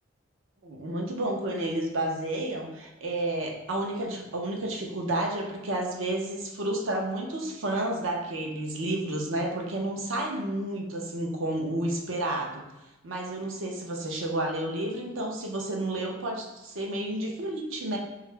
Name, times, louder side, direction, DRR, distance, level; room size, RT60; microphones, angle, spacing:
voice 1, 0.6-12.6 13.0-18.0, right 1 dB, 70° right, 1 dB, 0.6 m, -31 dB
3.6 x 2.4 x 3.2 m, 1.0 s
head